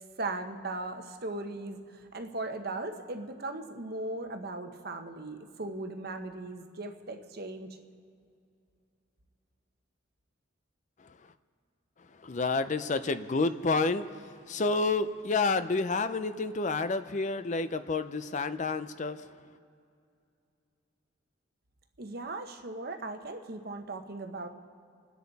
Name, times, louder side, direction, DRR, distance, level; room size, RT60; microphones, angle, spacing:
voice 1, 0.2-7.7 22.0-24.5, right 2 dB, 50° right, 6 dB, 1.1 m, -38 dB
voice 2, 12.2-19.3, left 3 dB, 40° left, 12 dB, 0.5 m, -29 dB
28.0 x 10.5 x 4.1 m, 2.5 s
head